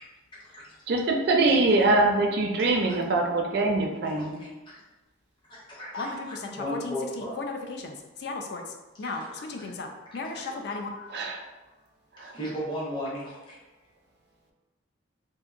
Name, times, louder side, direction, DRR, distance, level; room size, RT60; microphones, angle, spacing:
voice 1, 0.9-4.4 11.1-11.4 12.2-12.3, right 2 dB, 55° right, 1 dB, 0.3 m, -23 dB
voice 2, 4.2-4.5 5.5-7.4 9.0-9.7 10.1-10.2 10.7-10.8 12.2-13.6, equal, 25° left, -8 dB, 0.7 m, -36 dB
voice 3, 5.9-8.6 9.0-9.2 9.5-9.9 10.1-11.1, left 3 dB, 55° left, 3 dB, 0.3 m, -35 dB
2.7 x 2.5 x 2.4 m, 1.1 s
head